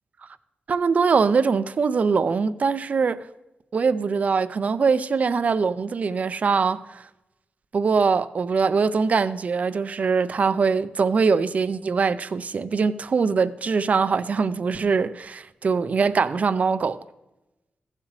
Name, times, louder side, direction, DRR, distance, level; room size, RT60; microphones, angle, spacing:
voice 1, 0.7-3.3 3.7-7.1 7.7-17.0, right 5 dB, 50° right, 0.5 m, -22 dB
15.5 x 7.4 x 3.2 m
wide cardioid pair, 110°, 3 cm